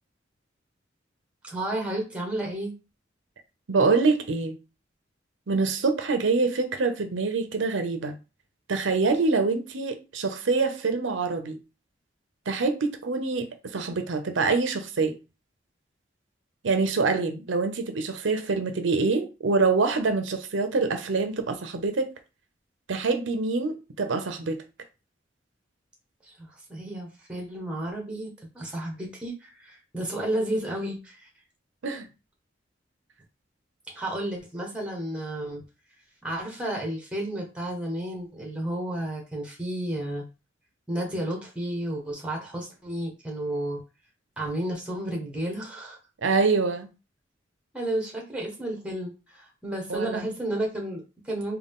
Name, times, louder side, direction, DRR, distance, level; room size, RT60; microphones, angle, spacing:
voice 1, 1.4-2.7 26.2-31.3 33.9-35.6 36.2-40.2 40.9-43.8 44.4-46.0 47.7-51.6, right 1 dB, 5° right, 1.2 m, -32 dB
voice 2, 3.7-4.6 5.5-8.2 8.7-11.6 12.5-15.2 16.6-22.1 22.9-24.6 31.8-32.1 46.2-46.9 49.9-50.3, right 4 dB, 90° right, 0.6 m, -25 dB
3.8 x 2.3 x 3.6 m
head